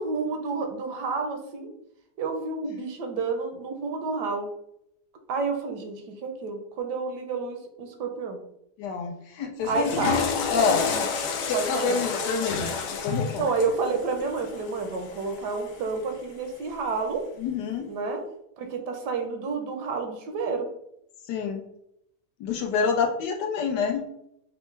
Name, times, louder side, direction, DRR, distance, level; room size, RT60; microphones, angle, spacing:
voice 1, 0.0-1.7 2.2-4.5 5.3-8.4 9.6-10.2 10.9-11.1 11.5-12.0 13.4-17.2 17.8-18.2 18.6-20.7, right 4 dB, 80° right, 4 dB, 1.3 m, -30 dB
voice 2, 8.8-10.1 10.5-10.8 11.5-13.5 17.4-17.9 21.3-21.6 22.4-24.0, left 5 dB, 85° left, 3 dB, 1.3 m, -27 dB
Water / Toilet flush, 9.6-15.9, left 5 dB, 65° left, 0.9 m, -30 dB
5.5 x 2.1 x 3.2 m, 0.77 s
omnidirectional pair, 1.8 m